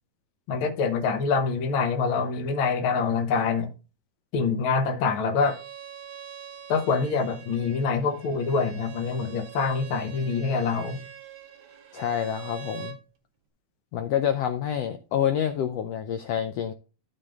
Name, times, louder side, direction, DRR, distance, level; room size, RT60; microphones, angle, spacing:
voice 1, 0.5-3.7 4.3-5.6 6.7-11.0, left 5 dB, 60° left, 1.4 m, -25 dB
Bowed string instrument, 5.4-13.0, right 9 dB, 50° right, 1.6 m, -44 dB
voice 2, 11.9-13.0 13.9-16.7, left 9 dB, 85° left, 1.4 m, -27 dB
13.0 x 5.2 x 3.6 m
omnidirectional pair, 3.7 m